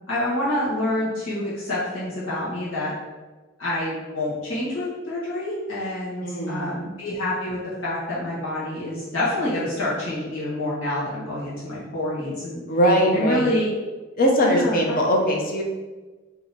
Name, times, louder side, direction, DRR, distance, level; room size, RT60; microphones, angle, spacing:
voice 1, 0.1-2.9 3.6-12.6 13.1-13.7 14.4-15.0, left 1 dB, 80° left, -9 dB, 1.4 m, -27 dB
voice 2, 6.2-6.7 12.7-13.4 14.2-15.6, equal, 45° left, 0 dB, 0.7 m, -20 dB
3.8 x 2.9 x 4.0 m, 1.2 s
head